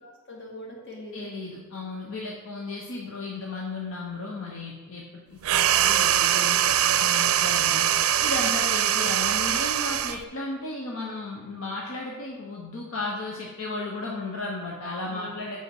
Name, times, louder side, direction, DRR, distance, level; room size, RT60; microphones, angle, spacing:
voice 1, 0.0-1.4 15.0-15.6, left 1 dB, 55° left, -2 dB, 2.1 m, -43 dB
voice 2, 1.1-7.9 8.2-15.6, left 2 dB, 75° left, -1 dB, 1.0 m, -34 dB
sound 1, 5.4-10.2, right 11 dB, 85° right, 0.4 m, -22 dB
8.1 x 6.4 x 4.7 m, 1.3 s
head